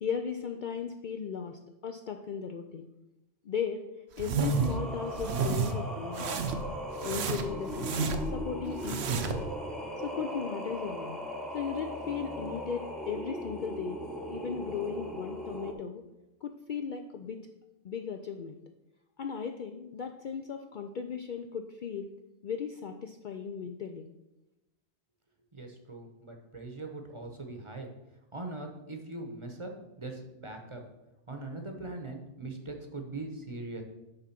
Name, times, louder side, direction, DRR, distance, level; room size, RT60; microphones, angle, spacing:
voice 1, 0.0-2.9 3.4-3.8 4.2-6.4 7.0-9.4 10.0-11.2 11.5-14.0 14.3-16.0 16.4-17.5 17.8-18.6 19.2-22.1 22.4-24.1, left 6 dB, 60° left, 5 dB, 0.5 m, -36 dB
sound 1, 4.2-4.8 5.1-5.7 6.1-6.7 7.0-8.4 8.8-9.4, right 5 dB, 70° right, 1.0 m, -31 dB
Singing, 4.5-15.7, equal, ahead, 0.7 m, -39 dB
voice 2, 25.5-27.9 28.3-29.7 30.0-30.8 31.3-33.8, right 2 dB, 30° right, 3 dB, 0.9 m, -41 dB
9.8 x 3.6 x 5.8 m, 0.96 s
omnidirectional pair, 1.2 m